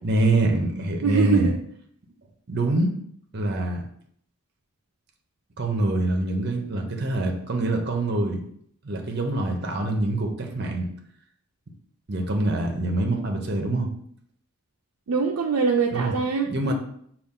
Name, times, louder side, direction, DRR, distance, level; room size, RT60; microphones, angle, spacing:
voice 1, 0.0-1.5 2.5-2.9 3.3-3.8 5.6-8.4 8.8-10.9 12.1-13.9 15.9-16.2 16.5-16.7, right 2 dB, 50° right, 3 dB, 0.7 m, -25 dB
voice 2, 1.0-1.6 15.1-16.7, right 5 dB, 90° right, 0 dB, 0.4 m, -23 dB
5.2 x 2.4 x 3.6 m, 0.66 s
head